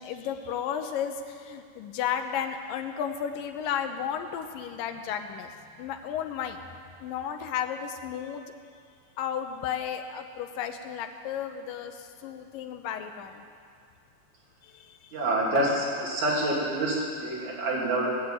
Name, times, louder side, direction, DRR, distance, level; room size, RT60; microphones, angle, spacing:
voice 1, 0.0-6.6 7.0-8.5 9.2-13.4 14.6-15.1, left 8 dB, 85° left, 6 dB, 2.5 m, -33 dB
voice 2, 15.1-18.1, right 1 dB, 60° right, -5 dB, 4.3 m, -27 dB
18.5 x 6.9 x 9.0 m, 2.1 s
omnidirectional pair, 4.0 m